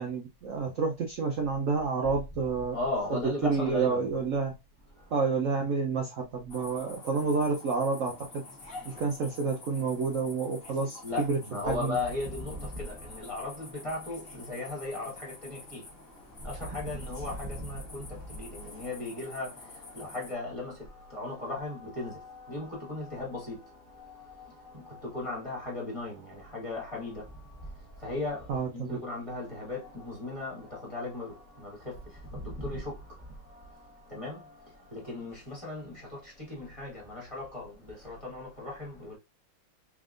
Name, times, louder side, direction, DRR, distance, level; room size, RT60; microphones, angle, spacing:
voice 1, 0.0-2.8 3.1-4.5 5.1-8.4 8.8-11.0 11.3-11.4 11.7-12.0 28.5-29.0, right 4 dB, 70° right, 0.7 m, -29 dB
voice 2, 2.7-4.0 4.9-5.1 8.8-9.0 11.0-39.2, left 2 dB, 15° left, 1.4 m, -37 dB
sound 1, 6.5-20.3, left 3 dB, 35° left, 1.1 m, -48 dB
3.9 x 3.5 x 2.4 m
omnidirectional pair, 2.3 m